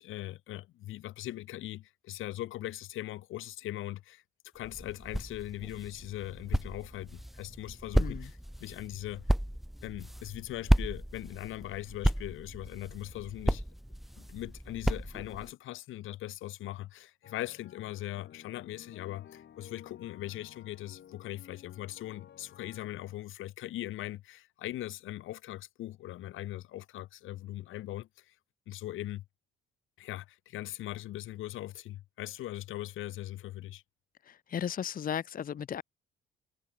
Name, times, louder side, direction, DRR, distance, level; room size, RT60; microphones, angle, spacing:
voice 1, 0.0-4.2 4.5-9.2 9.8-13.6 14.2-28.3 28.7-29.2 30.0-33.8, left 15 dB, 85° left, 3.7 m, -40 dB
sound 1, 4.6-15.5, equal, ahead, 0.4 m, -33 dB
voice 2, 8.0-8.3 34.2-35.8, left 9 dB, 45° left, 0.8 m, -35 dB
sound 2, 17.2-23.0, left 9 dB, 60° left, 6.9 m, -54 dB
cardioid pair, 90°, 20 cm